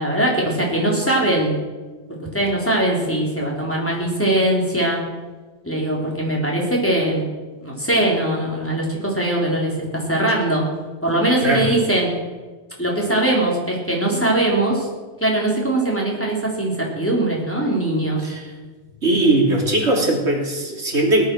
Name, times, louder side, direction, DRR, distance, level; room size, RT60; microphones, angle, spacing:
voice 1, 0.0-1.6 2.3-5.0 5.6-7.2 7.6-10.6 11.0-12.1 12.8-14.9 15.2-18.2, right 1 dB, 10° left, -3 dB, 3.9 m, -21 dB
voice 2, 18.2-18.5 19.0-21.2, right 2 dB, 85° right, -1 dB, 3.3 m, -19 dB
18.0 x 11.5 x 6.4 m, 1.3 s
omnidirectional pair, 1.1 m